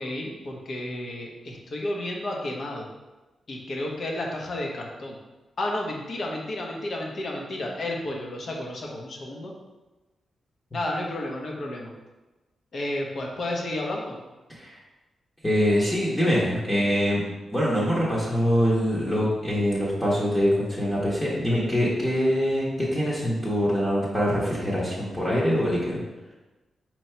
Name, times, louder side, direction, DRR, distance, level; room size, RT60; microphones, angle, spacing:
voice 1, 0.0-2.9 3.5-5.2 5.6-9.5 10.7-11.9 12.7-14.1, left 1 dB, 50° left, 0 dB, 0.8 m, -32 dB
voice 2, 15.4-17.2 17.5-26.0, equal, 10° left, -7 dB, 0.9 m, -24 dB
4.4 x 2.8 x 4.4 m, 1.1 s
wide cardioid pair, 135°, 0 cm